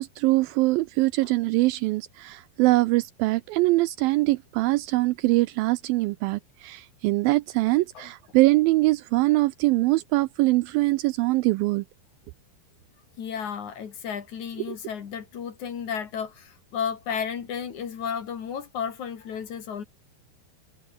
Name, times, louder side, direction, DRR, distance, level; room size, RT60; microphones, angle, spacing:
voice 1, 0.0-11.8, right 20 dB, 80° right, 2.2 m, -23 dB
voice 2, 13.2-19.8, left 7 dB, 55° left, 3.4 m, -33 dB
omnidirectional pair, 4.5 m